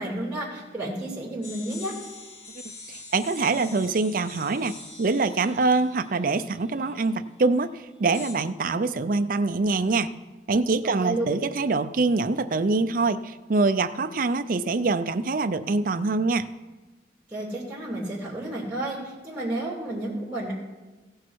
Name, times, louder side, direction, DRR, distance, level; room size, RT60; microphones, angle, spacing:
voice 1, 0.0-1.9 11.0-11.3 17.3-20.5, right 1 dB, 5° right, -5 dB, 2.5 m, -31 dB
sound 1, 1.4-7.1 8.1-8.3, left 3 dB, 70° left, 2.3 m, -44 dB
voice 2, 2.9-10.1 10.5-16.5, right 3 dB, 50° right, 10 dB, 0.5 m, -24 dB
16.0 x 6.4 x 4.6 m, 1.2 s
head